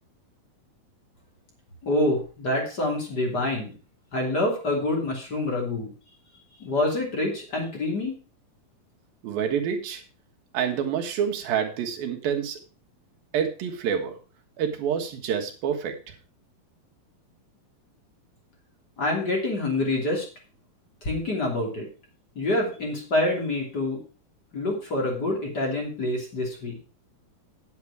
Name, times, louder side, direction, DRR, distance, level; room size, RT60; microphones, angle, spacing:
voice 1, 1.8-3.7 4.1-5.9 6.6-8.1 19.0-20.3 21.0-21.9 22.3-24.0 24.5-26.8, left 2 dB, 30° left, 0 dB, 3.1 m, -26 dB
voice 2, 9.2-10.0 10.5-12.6 13.3-14.1 14.6-16.0, right 8 dB, 75° right, 3 dB, 3.4 m, -27 dB
10.0 x 8.5 x 4.7 m, 0.35 s
omnidirectional pair, 4.2 m